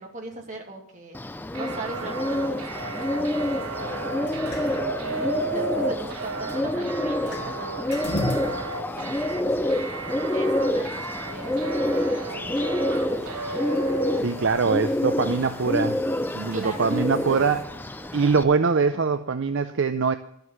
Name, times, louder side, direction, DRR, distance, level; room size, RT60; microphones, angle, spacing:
voice 1, 0.0-9.7 10.3-13.5 16.5-18.1, right 2 dB, 35° right, 1 dB, 2.4 m, -41 dB
Bird, 1.1-18.4, left 1 dB, 10° left, 0.4 m, -28 dB
sound 1, 1.5-14.5, right 3 dB, 85° right, 1.2 m, -34 dB
sound 2, 1.8-17.6, left 2 dB, 50° left, 1.7 m, -41 dB
voice 2, 14.1-16.0 16.3-17.6 18.1-20.1, right 5 dB, 55° right, 10 dB, 0.5 m, -23 dB
12.0 x 7.9 x 7.2 m, 0.73 s
head